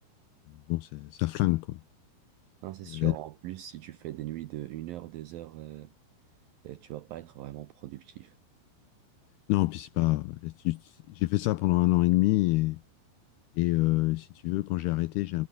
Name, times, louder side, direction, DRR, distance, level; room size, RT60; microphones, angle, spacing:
voice 1, 0.7-1.8 2.9-3.1 9.5-12.8 13.6-15.5, left 20 dB, 85° left, 2.2 m, -26 dB
voice 2, 2.6-5.9 6.6-8.4, right 14 dB, 80° right, 2.1 m, -40 dB
omnidirectional pair, 5.2 m